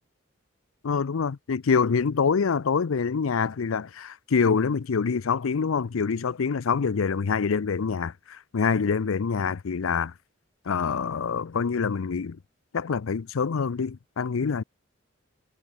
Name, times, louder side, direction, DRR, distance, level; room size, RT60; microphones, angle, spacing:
voice 1, 0.8-10.1 10.7-12.4 12.7-14.6, left 5 dB, 85° left, 0.5 m, -26 dB
head